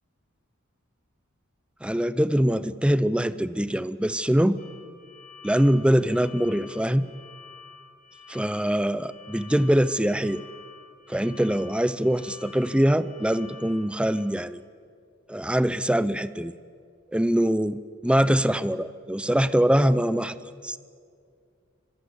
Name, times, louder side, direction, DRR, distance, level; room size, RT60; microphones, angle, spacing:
voice 1, 1.8-4.6 5.4-7.1 8.3-10.4 11.1-14.6 15.3-16.5 17.1-17.8 18.0-20.3 20.6-20.8, equal, 5° right, 15 dB, 0.7 m, -23 dB
sound 1, 4.6-14.2, left 5 dB, 40° left, 6.8 m, -49 dB
25.0 x 22.0 x 8.1 m, 2.2 s
head